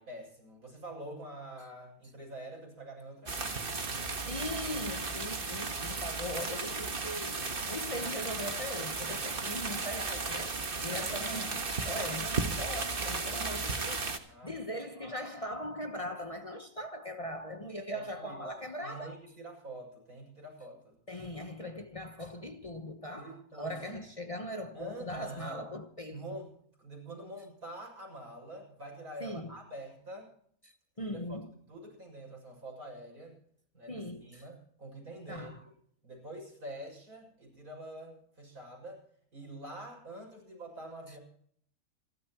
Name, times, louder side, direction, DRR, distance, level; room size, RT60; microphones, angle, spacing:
voice 1, 0.0-3.3 10.8-11.2 14.3-14.6 17.9-18.5 18.8-21.0 23.2-24.0 24.7-25.7 26.1-30.3 31.0-31.4 31.7-33.4 33.7-35.6 36.0-39.0 39.3-41.2, right 1 dB, 85° right, 7.3 m, -46 dB
sound 1, 3.3-14.2, right 4 dB, 40° right, 1.6 m, -35 dB
voice 2, 4.3-14.1 14.4-19.2 21.1-26.2 29.2-29.6 30.6-30.7 31.0-31.5 33.9-34.4 35.3-35.6, left 1 dB, 25° left, 1.1 m, -40 dB
28.0 x 12.5 x 3.0 m
omnidirectional pair, 1.5 m